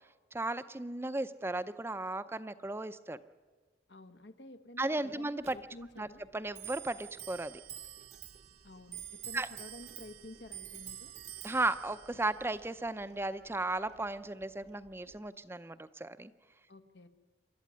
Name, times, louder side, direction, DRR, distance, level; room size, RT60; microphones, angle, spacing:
voice 1, 0.3-3.2 4.8-5.6 6.0-6.1 6.3-7.6 9.3-9.5 11.4-16.3, right 2 dB, 15° right, 12 dB, 0.6 m, -35 dB
voice 2, 3.9-6.2 8.6-11.1 16.7-17.1, left 2 dB, 85° left, 8 dB, 1.4 m, -51 dB
Clock, 5.4-15.3, right 10 dB, 40° right, 0.8 m, -49 dB
26.5 x 12.0 x 9.5 m, 1.4 s
head